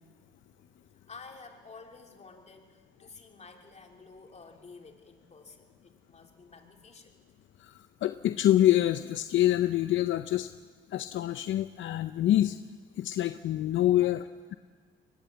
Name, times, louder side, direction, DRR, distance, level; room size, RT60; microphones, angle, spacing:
voice 1, 1.1-7.1, left 4 dB, 35° left, 3 dB, 3.1 m, -51 dB
voice 2, 7.6-10.5 10.9-12.6 13.0-14.2, left 13 dB, 75° left, 10 dB, 0.7 m, -26 dB
22.0 x 19.0 x 8.0 m, 1.5 s
cardioid pair, 90°, 20 cm